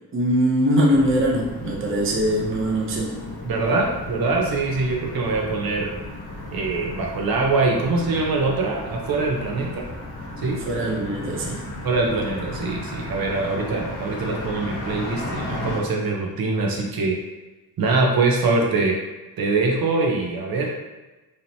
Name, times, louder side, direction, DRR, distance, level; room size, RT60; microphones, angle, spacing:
voice 1, 0.1-3.2 10.6-11.6, equal, 35° right, -2 dB, 0.7 m, -22 dB
sound 1, 0.9-15.8, left 1 dB, 75° left, 1.2 m, -34 dB
voice 2, 3.4-5.9 6.5-9.9 10.4-10.6 11.8-17.2 17.8-19.0 19.4-20.8, right 3 dB, 70° right, 0 dB, 0.8 m, -23 dB
4.9 x 2.8 x 2.7 m, 1.1 s
wide cardioid pair, 140°, 38 cm